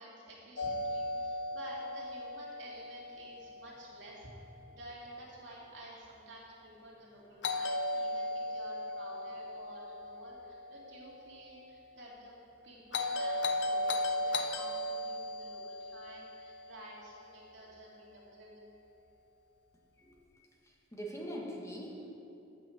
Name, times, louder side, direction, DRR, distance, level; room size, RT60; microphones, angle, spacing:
voice 1, 0.0-4.2 4.7-12.4 12.6-18.7, right 1 dB, 85° right, -4 dB, 2.3 m, -52 dB
Doorbell, 0.6-4.6 7.4-11.6 12.9-17.3, left 2 dB, 70° left, 0.7 m, -37 dB
voice 2, 20.9-22.1, equal, 15° left, -2 dB, 1.4 m, -41 dB
8.3 x 6.1 x 7.5 m, 2.7 s
head